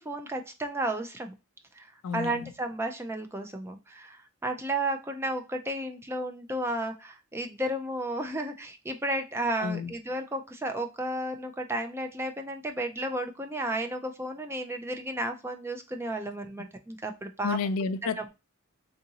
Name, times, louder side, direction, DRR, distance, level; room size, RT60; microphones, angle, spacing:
voice 1, 0.0-1.3 1.7-17.6 18.0-18.2, right 1 dB, 10° right, 0.4 m, -33 dB
voice 2, 2.0-2.5 9.6-9.9 17.4-18.3, left 5 dB, 70° left, 0.4 m, -31 dB
3.7 x 2.5 x 2.7 m
head